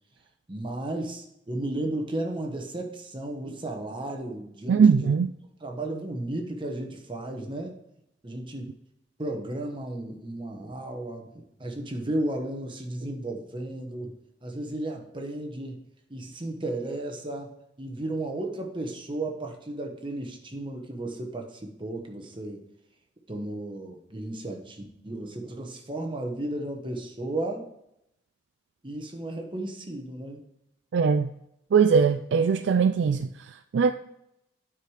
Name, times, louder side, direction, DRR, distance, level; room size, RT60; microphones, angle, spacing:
voice 1, 0.5-5.1 5.6-7.7 8.2-8.7 9.2-14.1 14.4-15.8 16.1-22.6 23.3-27.6 28.8-30.4, right 1 dB, 25° right, 1.1 m, -34 dB
voice 2, 4.7-5.3 30.9-31.3 31.7-33.3 33.7-33.9, right 6 dB, 70° right, 0.3 m, -20 dB
9.2 x 4.9 x 4.8 m
head